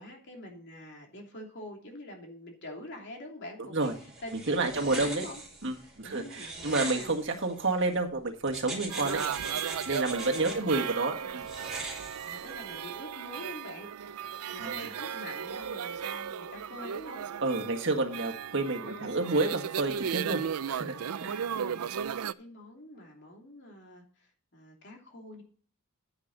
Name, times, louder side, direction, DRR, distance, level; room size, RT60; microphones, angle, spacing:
voice 1, 0.0-3.9 4.2-5.4 5.7-7.1 10.3-10.6 11.0-11.4 12.2-13.9 14.5-17.3 18.8-19.2 21.4-21.8 22.4-25.4, left 1 dB, 50° left, 2 dB, 2.9 m, -45 dB
sound 1, 3.8-8.0 8.5-10.6 11.4-12.7, right 2 dB, ahead, 3.2 m, -41 dB
voice 2, 4.5-5.3 5.6-9.2 9.9-11.5 14.6-14.9 17.4-20.4 20.7-21.5, right 2 dB, 55° right, 3 dB, 1.7 m, -30 dB
sound 2, 8.9-22.3, right 8 dB, 90° right, 0.5 m, -36 dB
9.7 x 9.6 x 4.0 m, 0.41 s
head